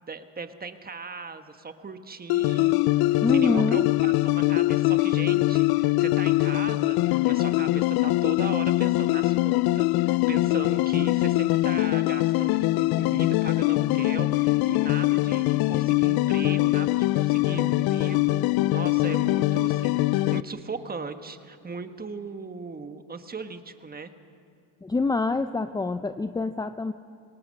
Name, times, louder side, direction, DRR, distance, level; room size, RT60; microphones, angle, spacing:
voice 1, 0.0-24.1, right 4 dB, 25° right, 8 dB, 1.4 m, -38 dB
sound 1, 2.3-20.4, left 18 dB, 70° left, 0.5 m, -23 dB
voice 2, 3.2-3.8 24.8-26.9, left 3 dB, 10° left, 10 dB, 0.5 m, -26 dB
27.0 x 20.0 x 6.5 m, 2.4 s
supercardioid pair, 95°, 39 cm